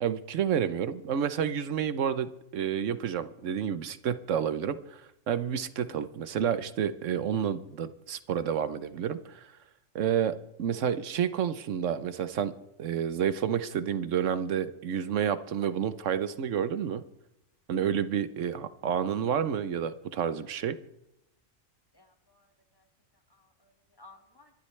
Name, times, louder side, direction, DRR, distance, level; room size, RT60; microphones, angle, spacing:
voice 1, 0.0-5.0 5.3-9.5 9.9-12.5 12.8-17.0 17.7-20.8, right 8 dB, 75° right, 13 dB, 1.1 m, -30 dB
voice 2, 21.9-22.9 23.3-24.5, left 3 dB, 20° left, 4 dB, 1.8 m, -58 dB
24.0 x 11.5 x 3.2 m, 0.83 s
omnidirectional pair, 1.3 m